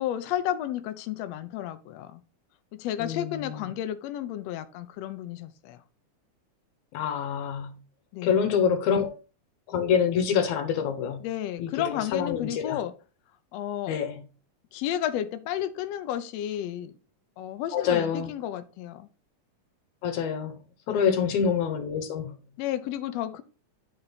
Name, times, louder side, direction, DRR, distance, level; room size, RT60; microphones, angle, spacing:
voice 1, 0.0-2.2 2.7-5.8 8.1-8.4 11.2-12.9 13.5-14.0 14.7-17.0 17.4-19.1 20.9-21.4 22.6-23.4, left 11 dB, 90° left, 1.4 m, -32 dB
voice 2, 3.0-3.6 6.9-7.7 8.2-9.2 9.7-11.2 11.6-12.8 13.9-14.2 17.7-18.3 20.0-20.5 20.9-22.3, left 7 dB, 70° left, 2.2 m, -26 dB
9.6 x 4.4 x 4.0 m
omnidirectional pair, 3.8 m